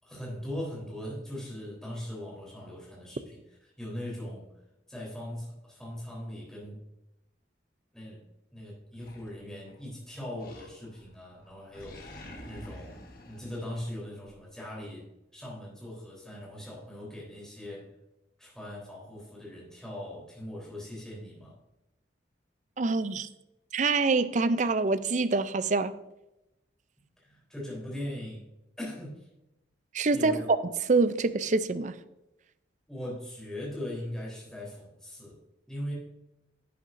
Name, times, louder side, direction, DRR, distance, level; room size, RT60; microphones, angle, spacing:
voice 1, 0.0-3.4 3.8-4.5 4.9-6.8 7.9-8.3 8.5-13.0 13.3-15.1 15.3-17.9 18.4-21.6 27.2-28.4 28.8-29.3 30.1-30.5 32.9-35.4 35.7-35.9, left 1 dB, 5° left, 3.6 m, -40 dB
Animal, 9.0-9.8 10.4-11.1 11.4-14.4, left 1 dB, 50° left, 1.4 m, -48 dB
voice 2, 22.8-23.3 23.7-25.9 29.9-30.3 30.9-32.0, right 3 dB, 40° right, 0.5 m, -25 dB
11.0 x 9.3 x 2.6 m
head